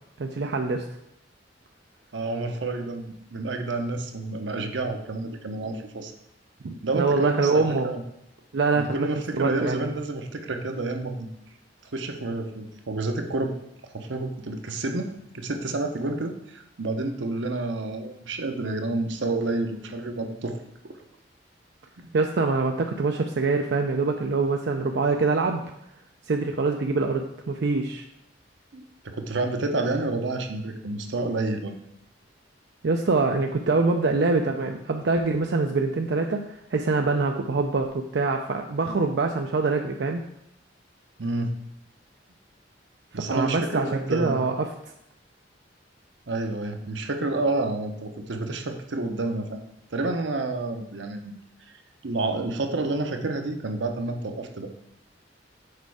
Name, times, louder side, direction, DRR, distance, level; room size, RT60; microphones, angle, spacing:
voice 1, 0.2-0.8 6.6-7.9 8.5-9.1 9.4-9.9 22.1-25.6 26.3-28.0 32.8-40.2 43.1-44.7, right 3 dB, 65° right, 3 dB, 0.5 m, -24 dB
voice 2, 2.1-6.1 6.8-8.0 8.7-11.3 11.8-13.5 13.9-20.6 22.0-22.1 28.7-31.8 41.2-41.5 43.1-44.4 46.3-49.6 49.9-51.4 52.0-54.7, right 2 dB, 85° right, 5 dB, 0.8 m, -29 dB
6.5 x 4.7 x 4.8 m, 0.80 s
head